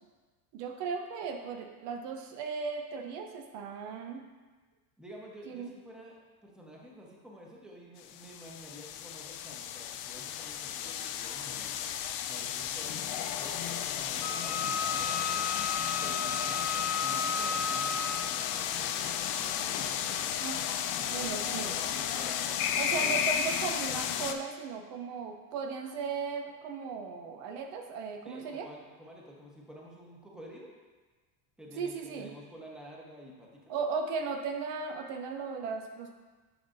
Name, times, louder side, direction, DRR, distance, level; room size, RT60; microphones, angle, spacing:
voice 1, 0.5-4.2 5.5-5.7 20.4-20.6 21.0-21.8 22.8-28.7 31.8-32.3 33.7-36.1, right 5 dB, 60° right, 4 dB, 0.8 m, -36 dB
voice 2, 5.0-11.7 12.2-15.5 16.0-20.2 21.0-23.3 28.2-30.7 31.6-33.7, equal, ahead, -3 dB, 1.0 m, -50 dB
sound 1, 8.0-24.3, left 9 dB, 50° left, 0.5 m, -33 dB
Wind instrument woodwind instrument, 14.2-18.4, left 5 dB, 90° left, 1.1 m, -34 dB
10.0 x 5.4 x 2.6 m, 1.3 s
cardioid pair, 130°, 48 cm